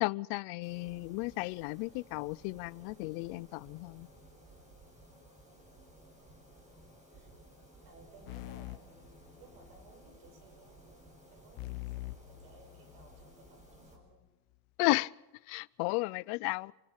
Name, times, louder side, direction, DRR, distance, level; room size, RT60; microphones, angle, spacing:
voice 1, 0.0-4.1 14.8-15.1 15.5-16.7, left 25 dB, 80° left, 0.7 m, -33 dB
sound 1, 0.6-14.0, right 1 dB, 15° right, 7.6 m, -57 dB
voice 2, 6.9-7.3 7.8-10.8 11.3-14.3, right 3 dB, 80° right, 6.7 m, -60 dB
sound 2, 8.3-9.9 11.6-13.3, left 21 dB, 45° left, 0.9 m, -44 dB
27.5 x 17.0 x 7.3 m
cardioid pair, 145°, 46 cm